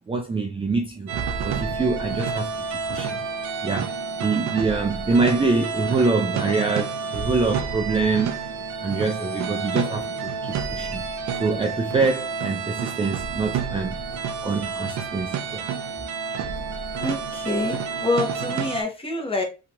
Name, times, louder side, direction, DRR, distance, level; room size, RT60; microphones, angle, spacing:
voice 1, 0.1-1.1 1.4-3.2 3.6-3.9 4.2-8.4 8.8-11.0 11.4-14.0 14.4-15.7, right 3 dB, 20° right, 0.4 m, -25 dB
sound 1, 1.1-18.8, right 5 dB, 65° right, 0.5 m, -29 dB
voice 2, 17.0-19.4, left 2 dB, 20° left, 1.0 m, -26 dB
2.9 x 2.4 x 2.7 m
cardioid pair, 90°, 30 cm